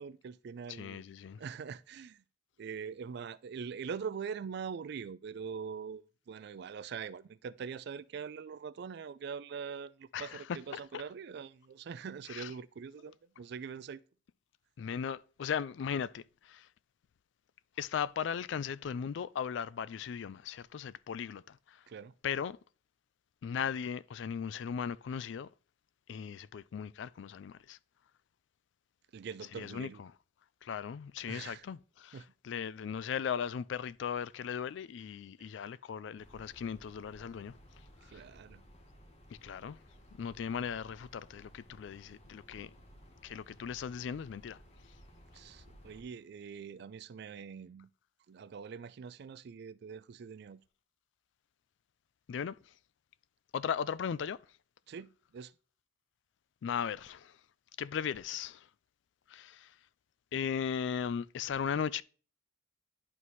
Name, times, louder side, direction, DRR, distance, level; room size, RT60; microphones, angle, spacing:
voice 1, 0.0-1.0 1.4-2.2 2.6-14.0 21.9-22.1 29.1-30.0 31.2-31.6 32.1-32.3 38.1-38.6 45.3-47.9 48.3-50.6 54.9-55.5, right 6 dB, 60° right, 0.3 m, -43 dB
voice 2, 0.7-1.4 10.1-10.4 10.7-11.0 12.3-12.5 14.8-16.7 17.8-21.8 22.2-22.6 23.4-25.5 26.1-27.8 29.5-30.1 30.6-37.5 38.1-38.2 39.4-39.8 40.2-42.7 43.2-44.6 52.3-52.6 53.5-54.4 56.6-57.4 57.8-58.7 59.3-59.7 60.3-62.0, left 7 dB, 65° left, 0.3 m, -37 dB
sound 1, 36.2-46.0, equal, 35° left, 1.2 m, -58 dB
11.0 x 4.1 x 3.0 m
head